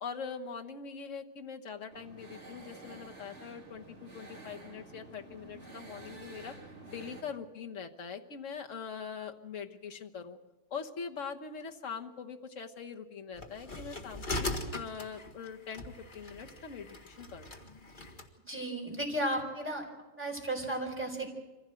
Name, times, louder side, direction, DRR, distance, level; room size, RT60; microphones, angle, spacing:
voice 1, 0.0-6.5 6.9-10.4 10.7-17.6, left 6 dB, 40° left, 4 dB, 1.4 m, -42 dB
sound 1, 1.9-7.2, right 2 dB, 30° right, 4.1 m, -50 dB
sound 2, 13.4-18.3, left 2 dB, 25° left, 1.6 m, -40 dB
voice 2, 18.5-19.9 20.2-21.3, right 1 dB, 5° right, 0 dB, 4.0 m, -34 dB
24.5 x 16.0 x 7.7 m, 1.2 s
omnidirectional pair, 2.4 m